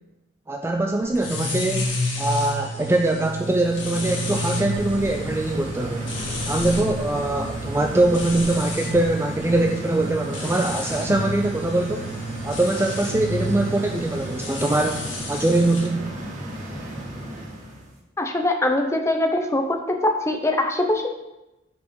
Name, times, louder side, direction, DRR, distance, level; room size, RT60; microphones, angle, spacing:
voice 1, 0.5-6.1 6.4-12.1 12.4-15.0 15.3-16.2, right 2 dB, 15° right, 4 dB, 0.4 m, -23 dB
sound 1, 1.2-15.9, left 1 dB, 75° left, 2.2 m, -31 dB
sound 2, 3.4-17.9, equal, 40° right, 1.8 m, -34 dB
voice 2, 18.2-21.1, left 1 dB, 15° left, 4 dB, 0.7 m, -22 dB
6.0 x 5.5 x 5.3 m, 0.96 s
head